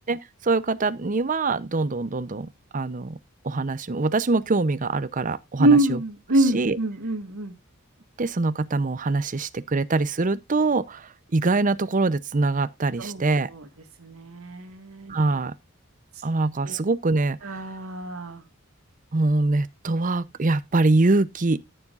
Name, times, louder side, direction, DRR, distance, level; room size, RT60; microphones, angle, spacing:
voice 1, 0.1-3.2 3.4-6.0 6.4-6.8 8.2-13.5 15.1-15.5 16.2-17.6 19.1-21.6, right 3 dB, 40° right, 0.7 m, -24 dB
voice 2, 5.6-7.5 13.0-13.2 14.0-15.1 16.6-16.8 17.4-18.4, right 2 dB, 80° right, 1.8 m, -24 dB
13.5 x 7.2 x 2.5 m
head